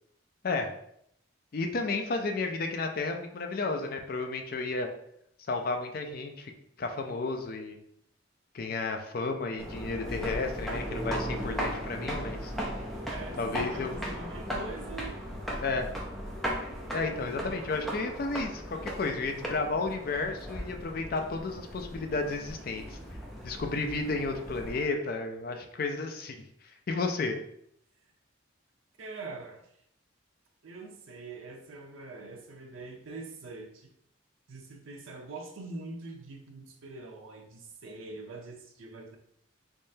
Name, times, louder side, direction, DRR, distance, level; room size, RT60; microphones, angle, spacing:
voice 1, 1.5-4.9 5.5-6.5 6.8-7.8 8.5-12.5 13.4-13.9 15.6-15.9 16.9-23.0 23.4-26.4 26.9-27.4, left 3 dB, 50° left, 4 dB, 0.4 m, -32 dB
sound 1, 9.6-24.9, equal, ahead, 0.5 m, -37 dB
voice 2, 13.0-15.2 29.0-29.6 30.6-33.9 34.5-39.2, right 3 dB, 90° right, 1 dB, 0.5 m, -43 dB
3.6 x 3.2 x 2.7 m, 0.72 s
head